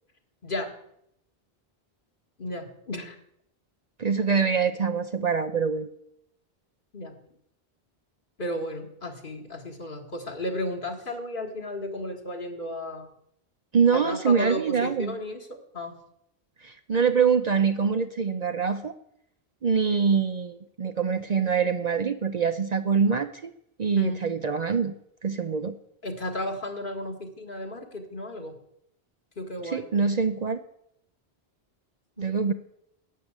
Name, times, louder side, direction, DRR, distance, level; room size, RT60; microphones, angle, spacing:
voice 1, 2.4-3.2 6.9-7.1 8.4-13.1 13.9-15.9 24.0-24.2 26.0-28.5 29.4-29.8 32.2-32.3, left 1 dB, 55° left, 3 dB, 1.9 m, -34 dB
voice 2, 4.0-5.9 13.7-15.2 16.6-18.9 19.6-23.5 23.8-24.9 25.2-25.7 29.6-30.6 32.2-32.5, right 6 dB, 45° right, 9 dB, 0.6 m, -24 dB
12.0 x 8.5 x 8.0 m, 0.75 s
omnidirectional pair, 1.1 m